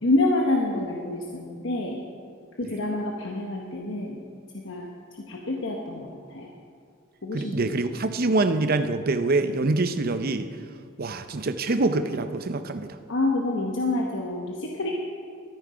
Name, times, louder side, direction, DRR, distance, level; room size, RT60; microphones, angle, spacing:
voice 1, 0.0-2.0 2.6-4.2 4.5-4.9 5.3-6.5 7.2-7.6 13.1-15.0, left 2 dB, 65° left, -1 dB, 1.0 m, -27 dB
voice 2, 7.3-10.5 11.0-12.9, right 2 dB, 50° right, 10 dB, 0.6 m, -25 dB
13.5 x 9.3 x 5.1 m, 2.1 s
head